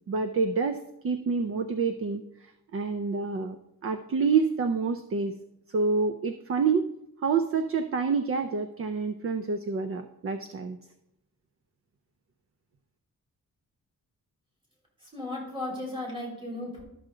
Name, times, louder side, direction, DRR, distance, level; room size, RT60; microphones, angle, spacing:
voice 1, 0.1-3.6 3.8-5.3 5.7-6.9 7.2-10.8, right 5 dB, 45° right, 9 dB, 0.5 m, -28 dB
voice 2, 15.0-16.8, left 1 dB, 15° right, -3 dB, 3.2 m, -35 dB
12.0 x 6.3 x 3.8 m, 0.84 s
wide cardioid pair, 165°, 33 cm